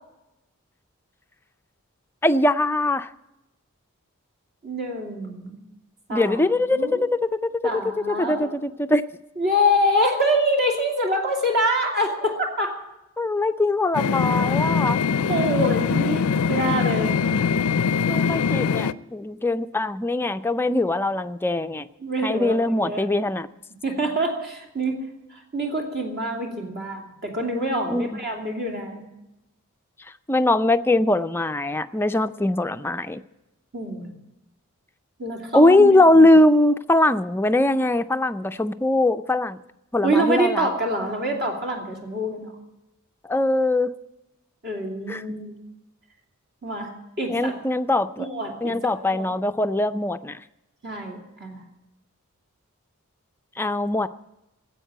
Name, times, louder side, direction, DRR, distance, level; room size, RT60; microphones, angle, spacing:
voice 1, 2.2-3.1 6.1-7.3 8.1-9.0 13.2-15.0 18.1-21.9 22.2-23.5 27.9-28.1 30.3-33.2 35.5-39.6 39.9-40.7 43.3-43.9 45.1-45.2 47.3-48.3 48.6-50.4 53.6-54.1, left 2 dB, 10° left, 9 dB, 0.4 m, -21 dB
voice 2, 4.6-5.6 6.1-6.4 6.7-7.0 7.6-8.5 9.4-12.8 15.3-17.2 22.0-23.1 23.8-25.0 25.3-29.0 33.7-34.1 35.2-36.3 40.0-42.5 44.6-45.5 46.6-46.9 47.2-47.5 48.2-49.3 50.8-51.6, equal, 45° right, 1 dB, 2.8 m, -25 dB
sound 1, 13.9-18.9, left 6 dB, 70° left, 0.4 m, -22 dB
15.0 x 8.1 x 9.1 m, 0.92 s
head